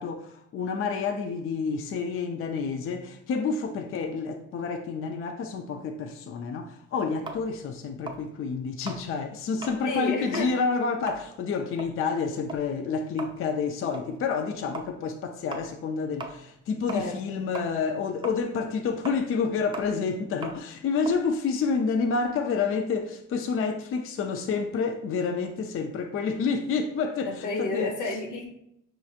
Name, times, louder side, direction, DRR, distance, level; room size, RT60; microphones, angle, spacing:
voice 1, 0.0-28.0, left 5 dB, 45° left, 0.4 m, -29 dB
sound 1, 7.3-9.9 10.2-10.6 10.9-17.3 17.5-22.3, right 2 dB, 15° right, 0.5 m, -41 dB
voice 2, 9.8-10.5 16.9-17.4 27.3-28.5, left 3 dB, 85° left, 1.0 m, -30 dB
5.2 x 2.9 x 2.4 m
cardioid pair, 90°, 30 cm